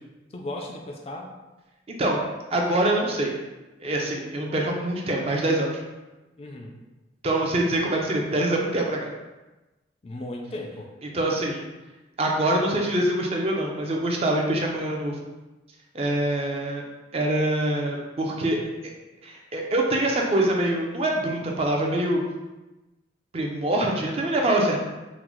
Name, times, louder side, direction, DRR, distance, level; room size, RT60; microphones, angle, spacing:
voice 1, 0.3-1.3 6.4-6.8 10.0-10.9, left 1 dB, 35° left, 1 dB, 0.3 m, -36 dB
voice 2, 1.9-2.2 2.5-3.3 3.8-5.8 7.2-9.1 11.1-11.7 12.2-15.2 15.9-16.8 17.1-18.6 19.2-22.2 23.3-24.8, right 1 dB, 35° right, 0 dB, 0.4 m, -24 dB
3.8 x 2.0 x 3.0 m, 1.1 s
head